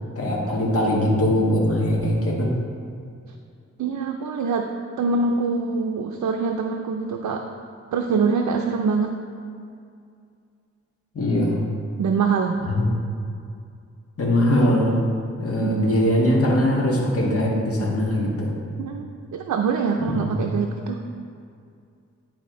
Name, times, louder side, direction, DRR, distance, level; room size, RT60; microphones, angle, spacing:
voice 1, 0.1-2.5 11.1-11.6 12.6-12.9 14.2-15.0 15.4-18.5 20.1-20.4, left 1 dB, 50° left, -4 dB, 1.5 m, -21 dB
voice 2, 3.8-4.7 5.0-7.4 7.9-9.1 12.0-12.6 15.6-15.9 18.8-21.0, right 5 dB, 85° right, 2 dB, 0.5 m, -24 dB
10.0 x 4.2 x 3.7 m, 2.4 s
wide cardioid pair, 160°, 30 cm